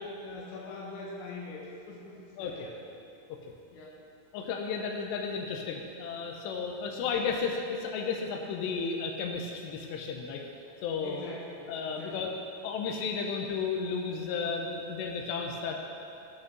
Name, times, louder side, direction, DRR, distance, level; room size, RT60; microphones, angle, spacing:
voice 1, 0.0-2.7 3.7-3.9 6.9-7.1 11.0-12.3, left 2 dB, 60° left, -3 dB, 2.5 m, -43 dB
voice 2, 2.4-2.7 3.3-3.5 4.3-10.4 10.8-11.3 11.7-12.3 12.6-15.8, left 5 dB, 85° left, 2 dB, 2.9 m, -33 dB
13.5 x 5.4 x 5.3 m, 2.6 s
omnidirectional pair, 4.8 m